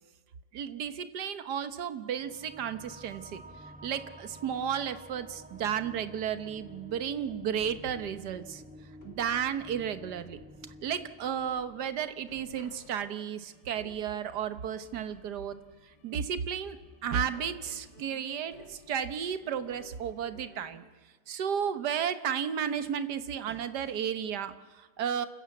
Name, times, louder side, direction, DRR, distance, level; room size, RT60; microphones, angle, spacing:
voice 1, 0.5-3.4 3.8-8.6 9.0-10.4 10.8-15.6 15.8-20.8 21.3-25.3, right 8 dB, 75° right, 11 dB, 1.7 m, -33 dB
sound 1, 2.1-13.0, equal, 5° right, 0.9 m, -51 dB
sound 2, 7.5-20.8, left 3 dB, 85° left, 3.0 m, -57 dB
29.5 x 13.5 x 8.4 m, 1.4 s
omnidirectional pair, 1.8 m